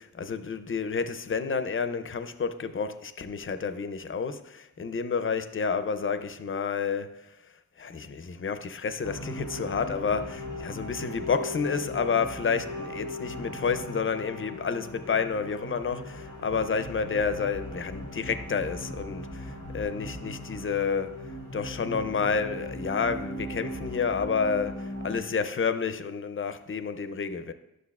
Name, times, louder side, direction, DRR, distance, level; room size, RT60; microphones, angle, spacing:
voice 1, 0.0-27.5, left 5 dB, 45° left, 0.5 m, -30 dB
sound 1, 9.0-25.2, left 1 dB, 80° right, 2.2 m, -38 dB
11.5 x 6.2 x 2.4 m
wide cardioid pair, 110°, 30 cm